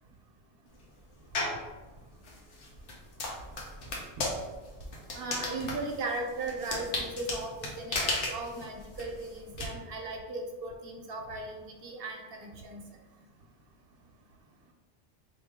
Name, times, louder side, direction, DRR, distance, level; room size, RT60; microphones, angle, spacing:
sound 1, 1.3-1.7 2.2-9.7, left 2 dB, 80° left, 1.1 m, -35 dB
voice 1, 5.1-12.8, right 2 dB, 60° right, 2 dB, 0.8 m, -37 dB
4.5 x 2.6 x 3.5 m, 1.3 s
omnidirectional pair, 1.2 m